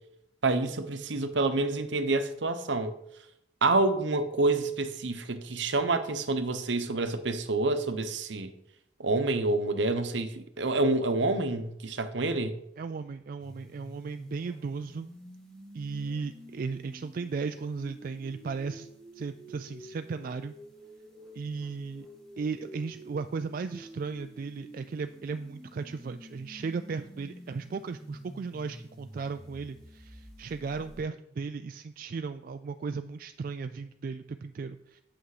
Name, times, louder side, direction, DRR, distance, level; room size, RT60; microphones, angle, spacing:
voice 1, 0.4-2.9 3.6-8.5 9.0-12.6, right 2 dB, 70° right, 0.8 m, -28 dB
voice 2, 12.8-15.1 15.7-18.9 19.1-20.5 21.3-22.1 22.4-35.0, right 4 dB, 45° right, 0.3 m, -36 dB
sound 1, 13.4-31.0, equal, 5° left, 2.1 m, -50 dB
8.2 x 6.1 x 4.9 m
head